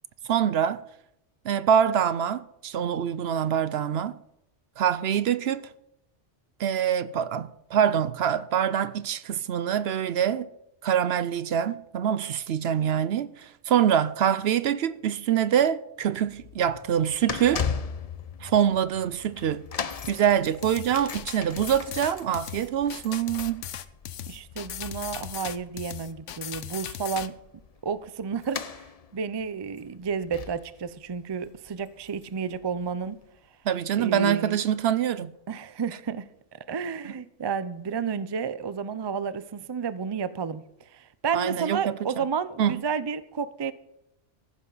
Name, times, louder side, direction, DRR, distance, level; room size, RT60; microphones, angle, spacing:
voice 1, 0.2-0.8 1.4-4.2 4.8-5.7 6.6-10.5 10.8-17.6 18.4-19.6 20.1-23.6 33.7-35.3 41.3-41.9 42.6-42.7, right 9 dB, 65° right, 0.8 m, -25 dB
sound 1, 16.2-32.6 32.8-33.1 33.8-33.9, left 6 dB, 40° left, 0.6 m, -39 dB
sound 2, 20.6-27.3, left 10 dB, 90° left, 1.1 m, -38 dB
voice 2, 24.3-27.4 27.8-33.2 34.0-34.6 35.5-43.7, right 6 dB, 35° right, 0.4 m, -31 dB
14.5 x 11.0 x 4.0 m
omnidirectional pair, 1.2 m